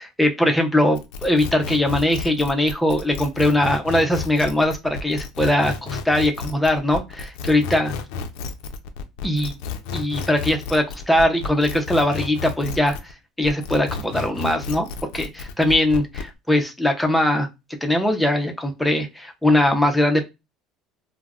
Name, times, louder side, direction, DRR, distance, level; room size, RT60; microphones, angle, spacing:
voice 1, 0.2-7.9 9.2-9.5 9.9-13.0 13.4-14.9 15.1-17.5 17.8-20.2, left 1 dB, 5° left, 4 dB, 0.5 m, -21 dB
sound 1, 0.9-13.1 13.4-16.3, left 5 dB, 85° left, 0.4 m, -32 dB
2.3 x 2.0 x 3.4 m, 0.23 s
cardioid pair, 140°, 0 cm